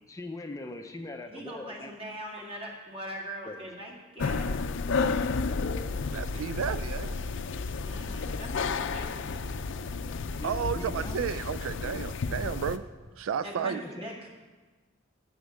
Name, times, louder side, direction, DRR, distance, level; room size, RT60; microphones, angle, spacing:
voice 1, 0.1-1.9 2.4-2.5 3.4-3.7 10.4-11.4 13.7-14.2, left 2 dB, 15° left, 5 dB, 0.5 m, -41 dB
voice 2, 1.3-4.5 7.8-9.5 13.4-14.3, equal, 30° right, -1 dB, 2.1 m, -41 dB
sound 1, 4.2-12.8, left 4 dB, 65° left, 0.5 m, -32 dB
voice 3, 6.1-7.1 10.4-12.8 13.2-13.8, right 7 dB, 90° right, 13 dB, 0.4 m, -32 dB
9.5 x 6.3 x 8.2 m, 1.3 s
head